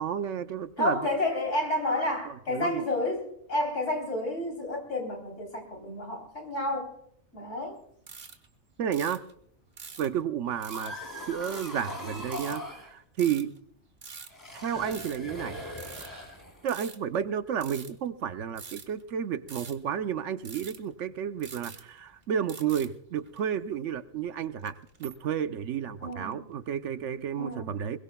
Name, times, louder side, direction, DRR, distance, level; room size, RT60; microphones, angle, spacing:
voice 1, 0.0-1.1 2.3-2.8 8.8-9.2 10.0-10.9 11.3-13.6 14.5-15.6 16.6-24.7 25.0-28.0, right 8 dB, 80° right, 11 dB, 1.1 m, -31 dB
voice 2, 0.8-6.9 7.3-7.8 26.0-26.5 27.4-27.8, left 1 dB, 80° left, 3 dB, 4.0 m, -30 dB
sound 1, 8.1-8.5 8.9-9.3 9.8-10.2 10.6-11.0 11.4-11.7 12.3-12.6 13.2-13.6 14.0-14.4 14.8-15.3 15.8-17.3 17.6-17.9 18.6-19.0 19.5-19.9 20.4-20.9 21.4-22.2 22.5-22.9 23.3-23.5 24.4-25.1, right 5 dB, 55° right, 1.4 m, -44 dB
sound 2, 10.5-12.9 14.3-16.8, left 1 dB, 15° left, 3.0 m, -40 dB
22.0 x 22.0 x 2.3 m, 0.69 s
omnidirectional pair, 1.2 m